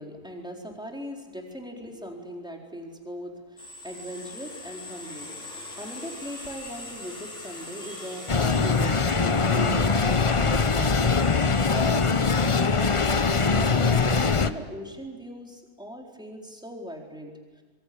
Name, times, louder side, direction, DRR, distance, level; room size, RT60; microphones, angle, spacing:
voice 1, 0.0-17.6, equal, 5° right, 0 dB, 4.1 m, -39 dB
sound 1, 3.6-12.6, left 2 dB, 50° left, 4.3 m, -42 dB
sound 2, 8.3-14.5, left 4 dB, 30° left, 0.6 m, -22 dB
25.5 x 24.5 x 8.7 m, 1.3 s
omnidirectional pair, 1.6 m